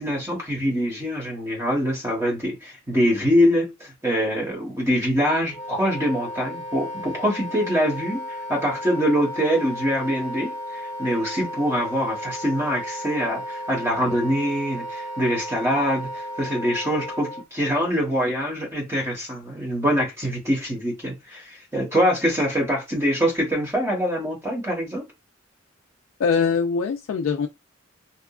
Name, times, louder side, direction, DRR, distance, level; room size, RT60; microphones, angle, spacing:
voice 1, 0.0-25.1, equal, 15° right, 0.9 m, -24 dB
Wind instrument woodwind instrument, 5.5-17.4, equal, 20° left, 0.9 m, -34 dB
voice 2, 26.2-27.5, left 5 dB, 70° left, 0.3 m, -22 dB
2.7 x 2.3 x 2.3 m
head